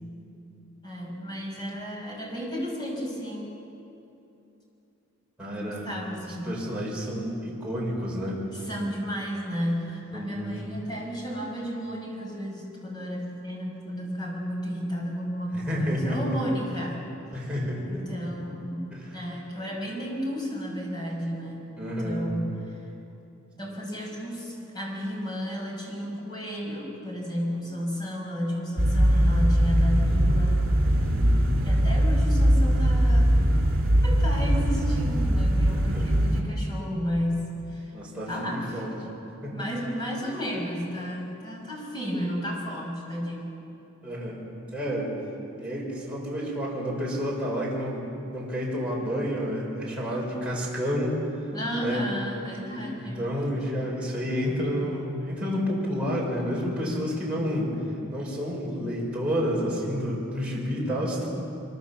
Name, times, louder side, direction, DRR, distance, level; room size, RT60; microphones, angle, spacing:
voice 1, 0.8-3.6 5.4-6.6 8.5-17.5 17.9-22.9 23.6-30.7 31.6-33.3 34.0-37.9 38.3-38.9 39.5-43.5 51.5-53.2, equal, 20° left, -2 dB, 5.7 m, -33 dB
voice 2, 5.4-5.9 6.4-8.4 10.1-10.6 15.5-16.4 17.3-18.1 18.9-19.1 21.8-22.2 30.8-31.5 35.7-36.3 37.9-38.9 39.4-39.7 41.2-41.3 44.0-44.4 44.7-45.2 45.6-51.2 51.8-52.1 52.7-57.8 58.1-61.3, equal, 5° right, -5 dB, 5.6 m, -30 dB
sound 1, 28.8-36.4, equal, 70° right, 3.5 m, -21 dB
24.5 x 24.0 x 7.2 m, 2.9 s
head